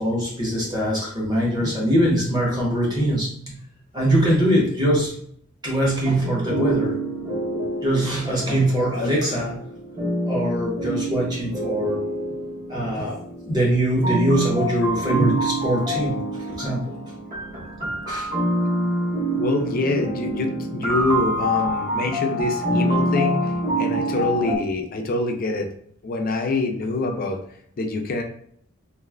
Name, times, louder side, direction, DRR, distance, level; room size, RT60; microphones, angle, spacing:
voice 1, 0.0-3.5 3.9-5.1 5.6-7.0 7.8-9.6 10.3-12.0 12.7-16.2 16.4-16.9 17.8-18.3 23.9-24.0, right 1 dB, 20° right, -4 dB, 1.0 m, -22 dB
sound 1, 6.2-24.6, right 1 dB, 35° right, 1.4 m, -26 dB
voice 2, 19.3-25.7 26.0-27.4 27.8-28.2, left 2 dB, 40° left, 4 dB, 0.4 m, -25 dB
3.1 x 2.5 x 2.3 m, 0.65 s
head